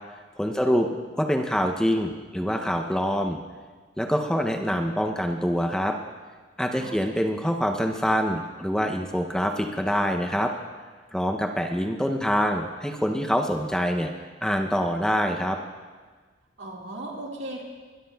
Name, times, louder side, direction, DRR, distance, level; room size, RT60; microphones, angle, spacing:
voice 1, 0.4-0.9 1.1-3.4 4.0-6.0 6.6-10.5 11.1-14.1 14.4-15.6, equal, 5° left, 3 dB, 0.5 m, -25 dB
voice 2, 6.7-7.2 16.6-17.6, right 1 dB, 70° right, -1 dB, 1.9 m, -37 dB
21.0 x 13.0 x 2.3 m, 1.4 s
head